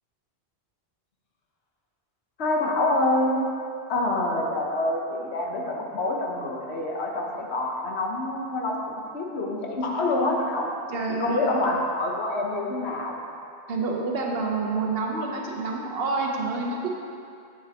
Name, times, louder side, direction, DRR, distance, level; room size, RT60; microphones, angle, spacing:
voice 1, 2.4-3.4 3.9-8.8 9.1-10.7 11.1-13.2, left 2 dB, 75° left, -1 dB, 1.2 m, -26 dB
voice 2, 10.9-11.4 13.7-16.9, right 3 dB, 60° right, -1 dB, 1.1 m, -28 dB
9.2 x 7.3 x 2.9 m, 2.5 s
omnidirectional pair, 1.1 m